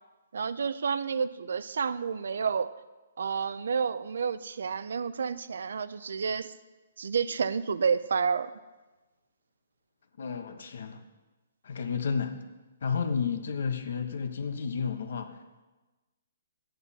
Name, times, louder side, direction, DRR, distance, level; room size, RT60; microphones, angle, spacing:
voice 1, 0.3-2.7 3.2-6.5 7.0-8.5, right 6 dB, 70° right, 15 dB, 0.5 m, -30 dB
voice 2, 10.2-11.0 11.6-12.4 12.8-15.4, left 6 dB, 65° left, 8 dB, 1.2 m, -31 dB
13.5 x 9.5 x 4.2 m, 1.2 s
hypercardioid pair, 170°, 0 cm